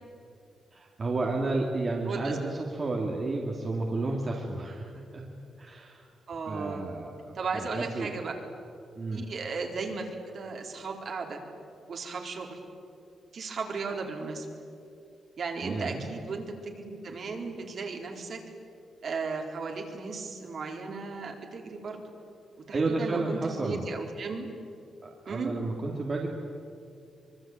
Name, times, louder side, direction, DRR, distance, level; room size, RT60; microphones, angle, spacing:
voice 1, 0.7-5.2 5.6-6.0 6.5-7.1 7.5-8.2 9.0-9.2 15.6-16.0 22.7-23.8 25.0-26.3, right 3 dB, 35° right, -2 dB, 2.8 m, -31 dB
voice 2, 2.1-2.4 6.3-6.9 7.3-8.3 9.1-11.4 11.9-12.6 13.3-14.5 15.4-18.4 19.0-22.1 22.7-24.5 25.3-25.5, right 4 dB, 50° right, 2 dB, 4.1 m, -36 dB
25.0 x 24.0 x 9.1 m, 2.5 s
wide cardioid pair, 150°, 0 cm